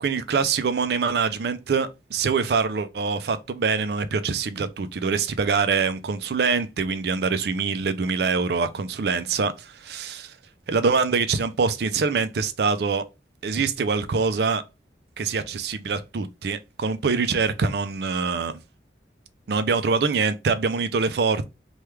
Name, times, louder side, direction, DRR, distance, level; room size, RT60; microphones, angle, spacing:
voice 1, 0.0-10.3 10.7-13.0 13.4-14.6 15.2-18.6 19.5-21.4, right 5 dB, 60° right, 0.4 m, -24 dB
3.2 x 2.3 x 3.1 m
head